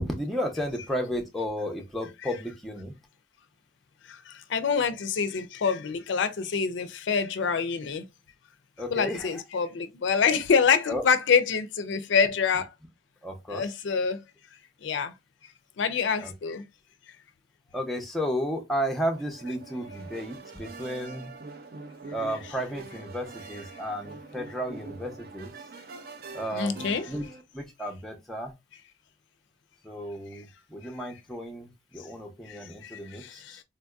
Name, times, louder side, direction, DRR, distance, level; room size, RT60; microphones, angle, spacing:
voice 1, 0.1-2.9 8.8-9.4 10.8-11.0 13.2-13.7 16.2-16.3 17.7-21.3 22.1-25.5 26.3-27.3 27.5-28.5 29.8-33.6, equal, ahead, 0.5 m, -33 dB
voice 2, 4.5-8.0 8.9-12.6 13.5-14.2 14.8-15.1 15.8-16.6 26.5-27.1, left 6 dB, 70° left, 0.4 m, -25 dB
sound 1, 19.1-27.4, right 3 dB, 50° right, 0.4 m, -44 dB
3.8 x 2.6 x 2.3 m
head